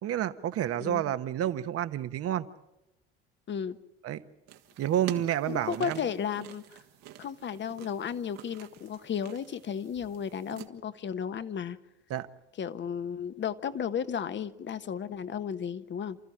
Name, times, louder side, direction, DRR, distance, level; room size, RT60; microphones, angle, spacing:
voice 1, 0.0-2.4 4.0-4.2 4.8-6.1 12.1-12.3, right 11 dB, 50° right, 1.3 m, -29 dB
voice 2, 0.8-1.1 3.5-3.8 5.5-6.8 7.2-11.8 12.6-16.2, left 8 dB, 40° left, 1.3 m, -34 dB
sound 1, 4.5-10.7, right 12 dB, 65° right, 1.8 m, -47 dB
29.0 x 14.0 x 8.8 m
hypercardioid pair, 70°, 30 cm